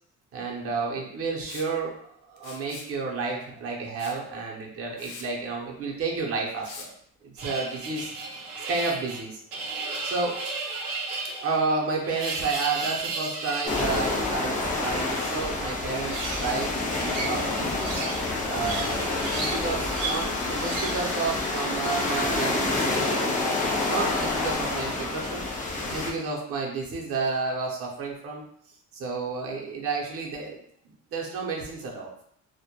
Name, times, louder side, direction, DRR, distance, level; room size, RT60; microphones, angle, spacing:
voice 1, 0.3-6.9 7.2-8.1 8.7-10.4 11.2-17.8 18.4-25.5 25.9-28.4 28.9-30.6 31.1-32.2, right 4 dB, 45° right, -2 dB, 0.6 m, -31 dB
Liquid, 1.5-1.7 2.4-2.9 4.0-4.2 4.6-4.7 5.0-5.3 6.6-6.9, left 5 dB, 70° left, 0.5 m, -43 dB
sound 1, 7.4-13.8 16.0-16.6 17.1-18.2 18.5-19.6 19.9-20.2 20.6-21.0, right 3 dB, 85° right, 0.7 m, -34 dB
sound 2, 13.6-26.1, left 2 dB, 25° left, 0.5 m, -28 dB
2.1 x 2.1 x 2.9 m, 0.69 s
cardioid pair, 120°, 32 cm